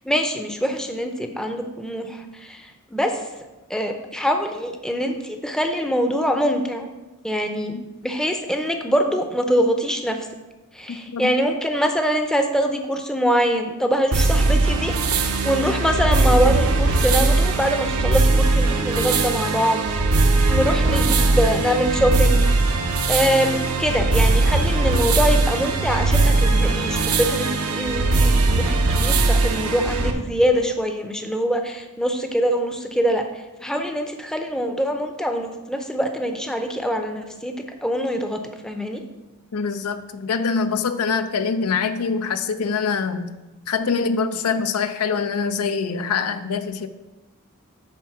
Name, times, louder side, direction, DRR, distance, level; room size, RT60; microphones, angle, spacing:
voice 1, 0.1-2.6 2.9-3.2 3.7-6.9 7.2-7.8 8.0-10.3 10.8-14.9 15.4-19.8 20.3-22.5 23.1-33.2 33.6-37.6 37.8-39.0, equal, 5° left, 5 dB, 0.6 m, -23 dB
voice 2, 10.9-11.3 39.5-43.3 43.7-46.9, left 5 dB, 80° left, 10 dB, 0.5 m, -24 dB
sound 1, 14.1-30.1, right 3 dB, 75° right, 0.8 m, -20 dB
8.9 x 3.6 x 5.9 m, 1.1 s
head